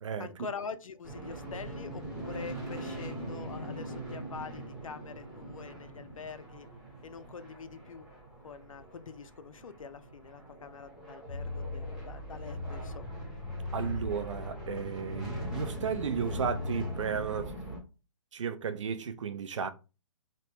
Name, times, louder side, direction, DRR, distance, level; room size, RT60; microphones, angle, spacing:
voice 1, 0.2-6.7 7.0-8.1 8.4-13.2, left 5 dB, 80° left, 0.5 m, -45 dB
sound 1, 1.0-17.8, right 1 dB, ahead, 0.9 m, -43 dB
sound 2, 11.3-16.9, left 2 dB, 25° left, 0.7 m, -39 dB
voice 2, 13.7-17.6 18.3-19.7, right 6 dB, 65° right, 0.5 m, -34 dB
3.1 x 2.1 x 2.8 m
hypercardioid pair, 150°, 17 cm